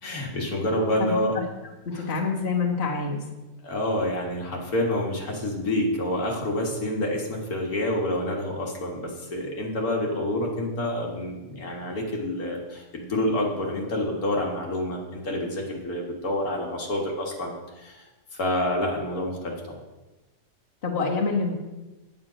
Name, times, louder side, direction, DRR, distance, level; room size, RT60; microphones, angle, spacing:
voice 1, 0.0-1.3 1.9-2.1 3.6-18.1 18.4-19.8, left 1 dB, 65° left, -1 dB, 2.0 m, -28 dB
voice 2, 0.8-1.1 1.9-3.2 20.8-21.5, left 4 dB, 40° left, -2 dB, 1.7 m, -26 dB
8.8 x 8.7 x 5.0 m, 1.1 s
omnidirectional pair, 1.7 m